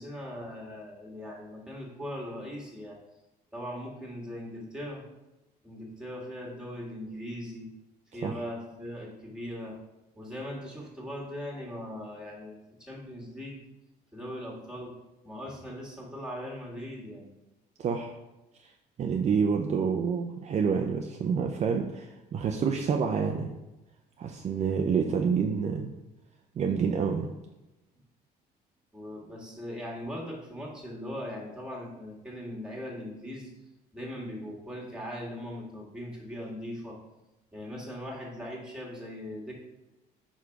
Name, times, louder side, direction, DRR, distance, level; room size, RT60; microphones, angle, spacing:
voice 1, 0.0-3.0 3.5-5.1 5.6-7.7 8.1-9.8 10.2-13.6 14.1-15.0 15.2-17.3 28.9-33.5 33.9-37.0 37.5-39.5, equal, 5° right, -3 dB, 1.8 m, -39 dB
voice 2, 17.8-18.1 19.0-23.5 24.2-25.9 26.6-27.3, right 6 dB, 40° right, 2 dB, 0.5 m, -28 dB
5.0 x 4.9 x 4.6 m, 1.0 s
cardioid pair, 110°, 17 cm